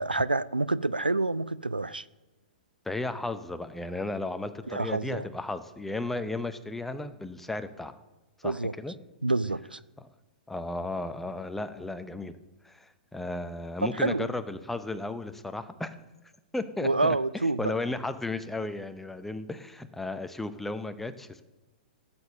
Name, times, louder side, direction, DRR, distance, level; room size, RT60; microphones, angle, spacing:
voice 1, 0.0-2.0 4.7-5.3 8.4-8.7 9.2-9.8 13.8-14.3 16.8-17.7, right 2 dB, 90° right, 0.4 m, -28 dB
voice 2, 2.9-7.9 8.4-8.9 10.0-10.1 10.5-12.4 12.6-15.9 16.5-17.2 17.6-21.4, left 2 dB, 5° left, 0.7 m, -34 dB
16.0 x 7.0 x 6.6 m
figure-of-eight pair, 105°, 5 cm